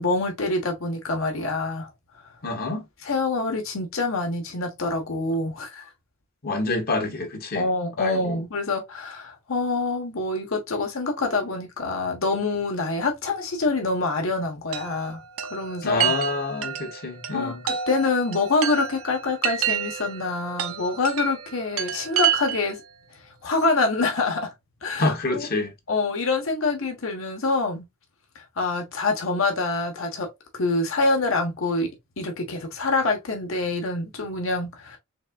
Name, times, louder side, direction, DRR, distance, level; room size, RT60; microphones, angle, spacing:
voice 1, 0.0-1.9 3.0-5.8 7.5-15.2 15.5-16.0 17.3-22.8 23.4-24.5 24.8-25.5 25.9-27.8 28.6-30.3 30.5-31.9 32.2-35.0, left 3 dB, 70° left, 1.1 m, -26 dB
voice 2, 2.4-2.8 6.4-7.7 8.0-8.4 15.8-17.6 25.0-25.7, left 2 dB, 45° left, 1.1 m, -27 dB
Chime, 14.7-22.8, right 10 dB, 85° right, 0.6 m, -29 dB
4.1 x 3.4 x 2.3 m
head